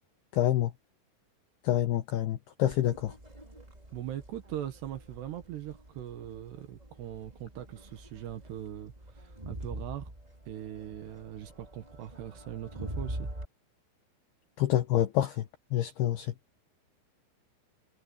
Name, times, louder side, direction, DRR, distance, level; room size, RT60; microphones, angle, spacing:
voice 1, 0.3-0.7 1.6-3.1 14.6-15.5 15.7-16.3, left 13 dB, 80° left, 2.3 m, -27 dB
Crowd, 2.7-13.4, right 1 dB, 15° right, 1.4 m, -44 dB
voice 2, 3.9-10.1 10.5-13.3, right 11 dB, 65° right, 3.1 m, -41 dB
omnidirectional pair, 5.9 m